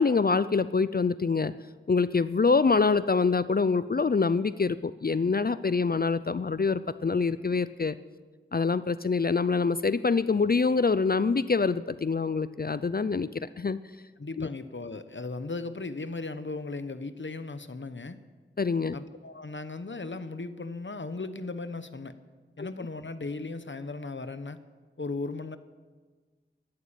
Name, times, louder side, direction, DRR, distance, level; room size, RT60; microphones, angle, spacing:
voice 1, 0.0-1.5 1.9-7.9 8.5-13.8 14.4-14.5 18.6-19.0 22.6-22.7, left 4 dB, 50° left, 15 dB, 0.5 m, -25 dB
voice 2, 14.2-18.2 18.9-22.1 22.6-24.6 25.0-25.6, left 3 dB, 65° left, 11 dB, 1.0 m, -37 dB
14.0 x 11.5 x 8.9 m, 1.4 s
wide cardioid pair, 45°, 21 cm